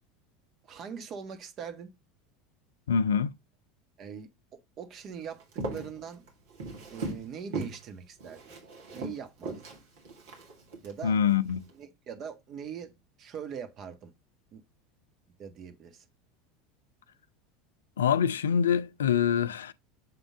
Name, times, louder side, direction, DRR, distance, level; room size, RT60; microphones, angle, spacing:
voice 1, 0.6-1.9 4.0-4.3 4.8-5.4 5.7-6.2 6.9-8.4 8.9-9.6 10.8-11.2 11.7-12.9 13.2-14.1 14.5-14.6 15.4-16.0, right 7 dB, 40° right, 1.5 m, -41 dB
voice 2, 2.9-3.3 11.0-11.6 18.0-19.7, left 8 dB, 75° left, 0.5 m, -25 dB
Walk footsteps, 5.4-7.3 7.5-7.8 8.2-10.9 11.4-11.7, right 2 dB, 65° right, 2.4 m, -38 dB
7.7 x 3.7 x 3.6 m
figure-of-eight pair, 75°, 0 cm